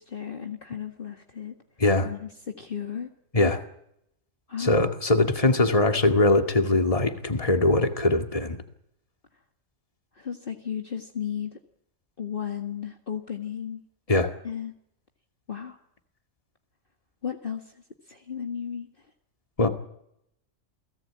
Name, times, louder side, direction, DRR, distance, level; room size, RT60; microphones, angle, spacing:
voice 1, 0.0-1.6 2.0-3.1 4.5-4.8 10.2-11.6 12.2-13.8 14.4-14.7 15.5-15.8 17.2-18.9, left 8 dB, 45° left, 4 dB, 1.9 m, -34 dB
voice 2, 4.6-8.6 14.1-14.3 19.6-19.7, left 2 dB, 25° left, 6 dB, 2.2 m, -21 dB
29.0 x 18.5 x 8.7 m, 0.77 s
omnidirectional pair, 1.3 m